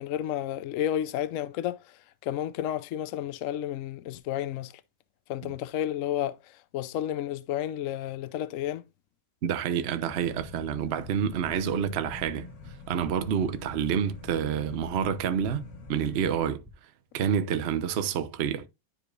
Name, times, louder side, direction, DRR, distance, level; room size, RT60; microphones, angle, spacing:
voice 1, 0.0-1.8 2.2-4.7 5.3-6.4 6.7-8.8, left 11 dB, 70° left, 0.7 m, -31 dB
voice 2, 9.4-12.5 12.9-16.6 17.1-18.7, right 8 dB, 65° right, 0.6 m, -28 dB
sound 1, 10.1-16.4, left 4 dB, 45° left, 1.5 m, -46 dB
sound 2, 10.9-16.7, right 1 dB, 5° right, 0.8 m, -50 dB
10.5 x 4.8 x 2.5 m
omnidirectional pair, 2.0 m